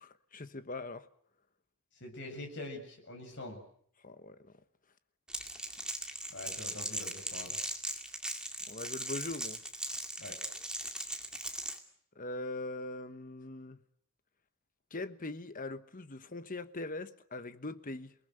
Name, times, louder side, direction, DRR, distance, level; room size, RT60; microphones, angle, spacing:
voice 1, 0.0-1.1 4.0-4.4 8.7-9.6 12.1-13.8 14.9-18.1, left 2 dB, 35° left, 1.3 m, -41 dB
voice 2, 2.0-3.6 6.3-7.6 10.2-10.4, left 2 dB, 55° left, 7.8 m, -44 dB
Crackle, 5.3-11.8, right 1 dB, 5° right, 2.2 m, -39 dB
28.0 x 19.5 x 8.0 m
head